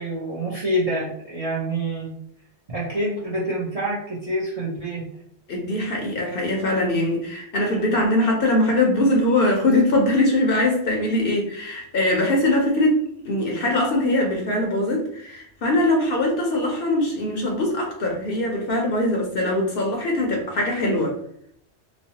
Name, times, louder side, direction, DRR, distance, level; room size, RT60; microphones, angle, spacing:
voice 1, 0.0-2.1 2.7-5.0, right 1 dB, 40° right, -6 dB, 0.6 m, -27 dB
voice 2, 5.5-21.1, left 1 dB, 60° left, 0 dB, 0.7 m, -22 dB
3.0 x 2.0 x 2.8 m, 0.67 s
omnidirectional pair, 1.2 m